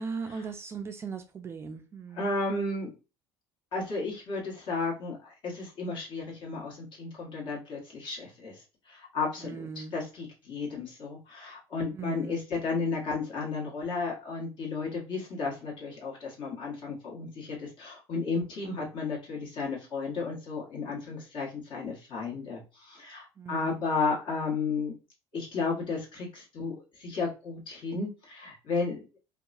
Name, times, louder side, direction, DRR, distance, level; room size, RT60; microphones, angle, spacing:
voice 1, 0.0-2.3 9.4-9.9 11.9-12.4 23.4-23.9, right 5 dB, 25° right, 0.3 m, -38 dB
voice 2, 2.1-2.9 3.7-24.9 25.3-29.2, left 4 dB, 50° left, 1.4 m, -33 dB
2.8 x 2.2 x 2.5 m
cardioid pair, 120°, 10 cm